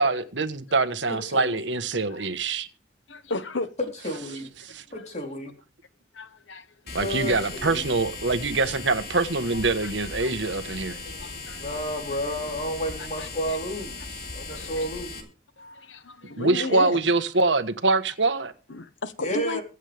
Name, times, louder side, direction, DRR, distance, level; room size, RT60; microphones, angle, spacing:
voice 1, 0.0-2.7 4.6-4.8 6.9-11.0 16.4-18.5, right 3 dB, 75° right, 1.4 m, -24 dB
voice 2, 1.3-1.6 4.0-4.5 4.9-5.5 7.0-7.9 10.9-11.3 11.6-15.3 19.2-19.6, equal, 35° left, 3.9 m, -32 dB
voice 3, 3.1-3.7 4.9-5.1 6.1-7.2 8.3-8.4 8.7-8.8 9.5-9.9 10.2-10.3 11.2-11.6 13.2-13.6 14.5-14.9 15.6-17.0 18.7-19.6, left 2 dB, 85° left, 1.3 m, -35 dB
sound 1, 6.9-15.2, left 3 dB, 55° left, 3.6 m, -38 dB
24.0 x 8.3 x 3.5 m
head